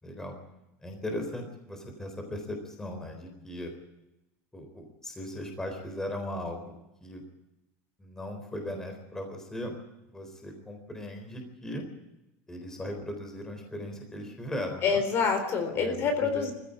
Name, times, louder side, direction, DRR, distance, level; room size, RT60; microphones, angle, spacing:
voice 1, 0.0-0.3 0.8-3.7 4.5-6.7 7.0-7.2 8.0-9.8 10.1-11.8 12.5-15.0 15.7-16.5, left 1 dB, 5° left, 4 dB, 3.9 m, -38 dB
voice 2, 14.8-16.5, left 5 dB, 40° left, 6 dB, 3.9 m, -27 dB
20.0 x 15.5 x 9.9 m, 0.93 s
cardioid pair, 165°, 7 cm